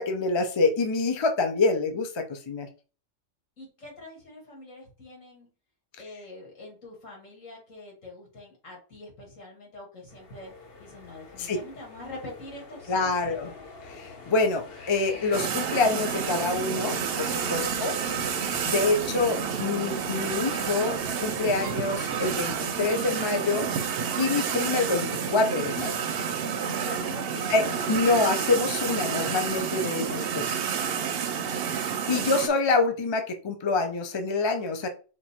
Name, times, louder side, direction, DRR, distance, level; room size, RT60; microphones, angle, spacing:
voice 1, 0.0-2.7 11.4-11.6 12.9-13.5 13.8-18.0 18.6-23.7 24.2-25.9 27.5-27.6 27.9-30.1 31.7-34.9, left 3 dB, 30° left, 5 dB, 0.6 m, -26 dB
voice 2, 3.6-5.5 6.0-10.5 10.8-13.4 26.8-28.2 30.1-30.6, left 2 dB, 80° left, -1 dB, 2.3 m, -44 dB
sound 1, 10.1-22.9, left 4 dB, 50° left, 1.1 m, -44 dB
sound 2, 15.3-32.5, right 7 dB, 60° right, 0.7 m, -30 dB
4.5 x 2.6 x 4.2 m, 0.36 s
omnidirectional pair, 1.3 m